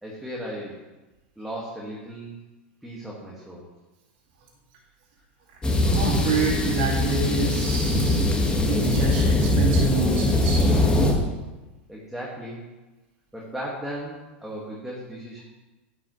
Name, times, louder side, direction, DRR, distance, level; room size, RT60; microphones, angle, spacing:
voice 1, 0.0-0.8 1.4-2.4 2.8-3.6 11.9-12.6 13.3-15.4, right 1 dB, ahead, -5 dB, 2.0 m, -36 dB
sound 1, 5.6-11.1, left 1 dB, 15° left, 1.7 m, -21 dB
voice 2, 5.9-8.3 8.7-10.7, right 3 dB, 60° right, -4 dB, 2.4 m, -27 dB
9.6 x 8.7 x 3.2 m, 1.1 s
hypercardioid pair, 100°, 6 cm